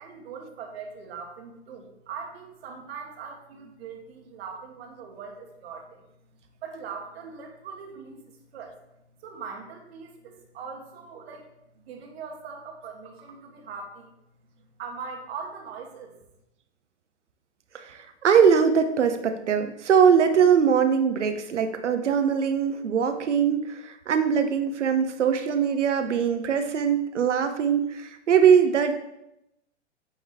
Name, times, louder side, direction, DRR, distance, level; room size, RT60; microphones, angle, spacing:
voice 1, 0.0-6.1 6.6-8.8 9.2-11.5 11.7-14.1 14.6-16.1, right 5 dB, 60° right, 3 dB, 1.4 m, -41 dB
voice 2, 17.7-28.9, right 7 dB, 80° right, 8 dB, 0.8 m, -22 dB
8.6 x 3.1 x 3.7 m, 0.86 s
figure-of-eight pair, 105°, 35 cm